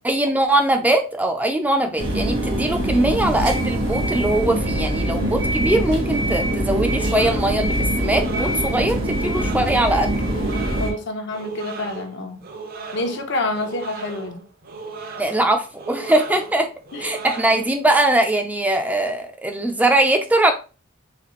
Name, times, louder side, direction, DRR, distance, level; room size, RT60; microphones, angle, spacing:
voice 1, 0.0-10.1 15.2-16.7 17.0-20.5, right 1 dB, 10° right, 0.4 m, -21 dB
sound 1, 2.0-10.9, right 1 dB, 85° right, 1.7 m, -23 dB
voice 2, 5.2-5.5 10.8-12.4 12.9-14.4 16.9-17.2 17.5-17.6, left 2 dB, 65° left, 0.8 m, -28 dB
sound 2, 6.8-17.9, right 4 dB, 50° right, 0.7 m, -36 dB
4.1 x 3.2 x 3.1 m
head